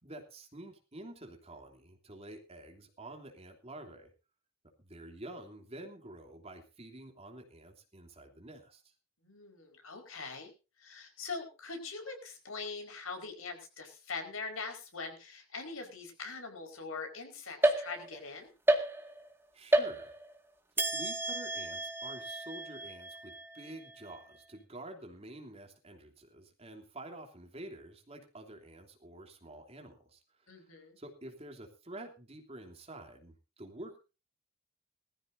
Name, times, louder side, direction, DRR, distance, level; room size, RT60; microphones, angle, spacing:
voice 1, 0.0-4.1 4.8-8.9 19.5-20.1 20.9-30.6 31.0-34.0, right 1 dB, 30° right, 3 dB, 3.1 m, -49 dB
voice 2, 9.2-10.5 10.8-18.5 30.5-31.0, left 4 dB, 80° left, 5 dB, 5.0 m, -42 dB
sound 1, 17.6-18.3 18.7-19.3 19.7-20.4 20.8-24.2, right 1 dB, 10° right, 2.0 m, -32 dB
21.0 x 14.5 x 2.7 m, 0.31 s
head